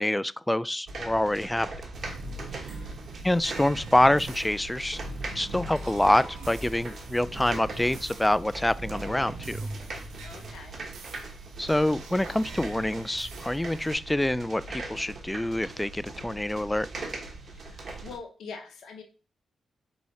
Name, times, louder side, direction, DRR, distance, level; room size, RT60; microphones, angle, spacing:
voice 1, 0.0-1.7 3.2-5.0 5.3-9.6 11.6-16.9, left 1 dB, 10° left, 0.3 m, -26 dB
sound 1, 0.9-18.2, right 2 dB, 60° right, 1.2 m, -40 dB
sound 2, 1.9-13.9, right 3 dB, 85° right, 0.9 m, -43 dB
voice 2, 2.5-3.0 10.2-10.8 17.5-19.0, left 5 dB, 80° left, 0.7 m, -44 dB
4.8 x 4.0 x 2.7 m
supercardioid pair, 45°, 0 cm